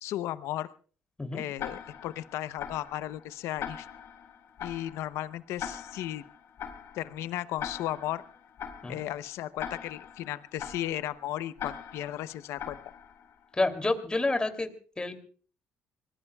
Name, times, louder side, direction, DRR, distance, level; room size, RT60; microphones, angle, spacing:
voice 1, 0.0-0.7 1.3-3.9 4.6-6.2 6.9-8.2 8.9-12.8, left 13 dB, 80° left, 15 dB, 0.8 m, -35 dB
Tick-tock, 1.6-13.4, left 8 dB, 65° left, 4.2 m, -42 dB
voice 2, 13.5-14.7 15.0-15.1, left 2 dB, 20° left, 7 dB, 2.9 m, -28 dB
25.5 x 20.0 x 2.3 m, 0.42 s
supercardioid pair, 70°, 5 cm